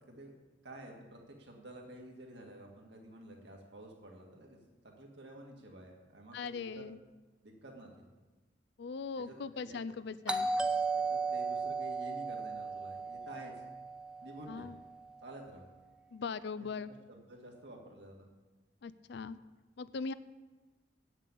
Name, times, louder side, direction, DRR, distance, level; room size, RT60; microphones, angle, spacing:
voice 1, 0.6-4.6 5.0-6.9 7.4-8.1 9.1-9.8 10.4-13.6 14.2-14.7 15.2-15.6 16.6-18.3, right 1 dB, 65° right, 0 dB, 2.1 m, -51 dB
voice 2, 6.3-7.0 8.8-10.5 14.5-14.8 16.1-16.9 18.8-19.4 19.8-20.1, left 5 dB, 65° left, 16 dB, 0.4 m, -40 dB
Doorbell, 10.3-14.9, right 3 dB, 5° right, 0.6 m, -35 dB
8.3 x 7.4 x 8.6 m, 1.2 s
head